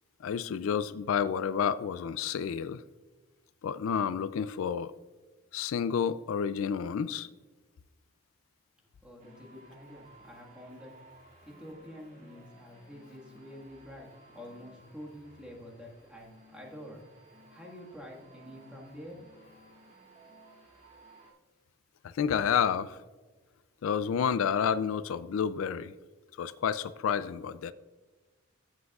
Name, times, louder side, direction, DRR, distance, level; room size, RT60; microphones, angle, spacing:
voice 1, 0.2-2.8 3.6-4.9 5.5-7.3 22.0-23.0 23.8-25.9 26.4-27.7, left 7 dB, 80° left, 15 dB, 0.3 m, -30 dB
voice 2, 9.0-10.9 11.4-17.0 17.5-19.2, left 1 dB, 5° right, -2 dB, 1.6 m, -48 dB
sound 1, 9.2-21.3, right 1 dB, 40° right, 2.3 m, -57 dB
14.0 x 7.6 x 2.4 m, 1.3 s
head